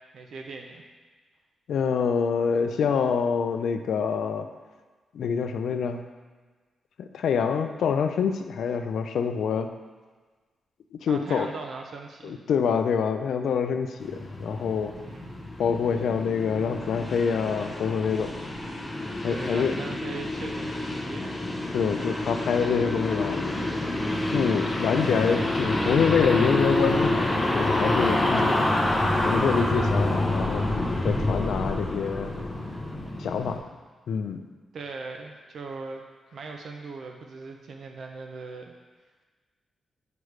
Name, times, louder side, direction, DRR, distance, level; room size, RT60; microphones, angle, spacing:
voice 1, 0.1-0.8 11.1-12.4 15.0-15.4 19.3-21.4 34.7-36.0 36.3-38.7, right 4 dB, 55° right, 3 dB, 0.5 m, -39 dB
voice 2, 1.7-4.5 5.1-6.0 7.0-9.7 11.0-11.5 12.2-14.9 15.6-18.3 19.2-19.8 21.7-23.4 24.3-27.2 27.5-28.7 29.2-30.7 31.0-32.3 33.2-33.6 34.1-34.4, left 6 dB, 75° left, 7 dB, 0.4 m, -26 dB
sound 1, 14.0-33.6, left 1 dB, 15° left, 0.6 m, -27 dB
8.0 x 5.0 x 3.2 m, 1.4 s
wide cardioid pair, 175°, 0 cm